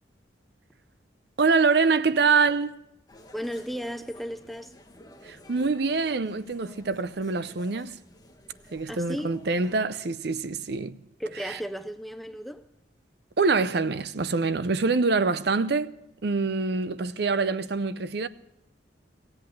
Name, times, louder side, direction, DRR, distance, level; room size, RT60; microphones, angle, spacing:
voice 1, 1.4-2.8 5.2-8.0 8.7-11.0 11.4-11.6 13.4-15.9 16.2-18.3, right 4 dB, 55° right, 0.6 m, -25 dB
sound 1, 3.1-9.8, left 1 dB, 20° left, 1.1 m, -52 dB
voice 2, 3.3-4.7 8.9-9.3 11.2-12.7, equal, ahead, 0.4 m, -35 dB
16.5 x 8.1 x 8.6 m
head